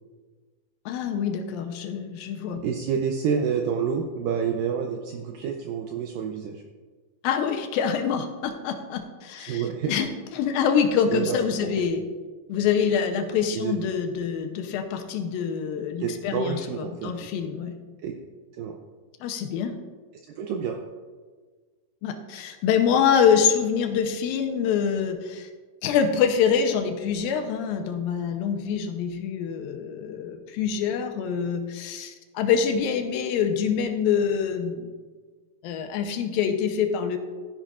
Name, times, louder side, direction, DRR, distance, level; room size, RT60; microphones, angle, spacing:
voice 1, 0.9-2.6 7.2-12.0 12.5-17.8 19.2-19.8 22.0-25.5 25.8-34.9 35.6-37.2, left 7 dB, 80° left, 5 dB, 2.3 m, -25 dB
voice 2, 2.6-6.6 9.4-9.9 11.1-11.4 11.8-11.9 13.5-13.7 16.0-17.1 18.0-18.1 18.6-18.8 20.4-20.8, right 7 dB, 80° right, 3 dB, 2.0 m, -28 dB
13.0 x 10.5 x 2.5 m, 1.5 s
omnidirectional pair, 4.6 m